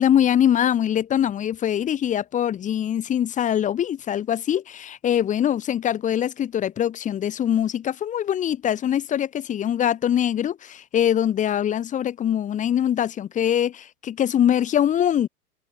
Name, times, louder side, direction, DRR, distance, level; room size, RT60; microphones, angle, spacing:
voice 1, 0.0-15.3, left 10 dB, 15° left, 1.9 m, -23 dB
figure-of-eight pair, 110°, 48 cm